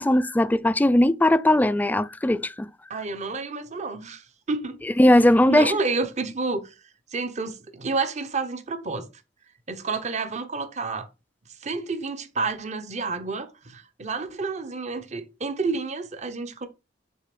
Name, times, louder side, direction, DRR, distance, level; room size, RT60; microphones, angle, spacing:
voice 1, 0.0-2.7 5.0-5.8, left 1 dB, 10° left, 0.3 m, -19 dB
voice 2, 2.9-4.8 5.1-5.2 5.5-6.7 7.1-9.1 9.7-11.1 11.6-16.7, right 4 dB, 40° right, 0.9 m, -30 dB
6.7 x 3.3 x 5.9 m
head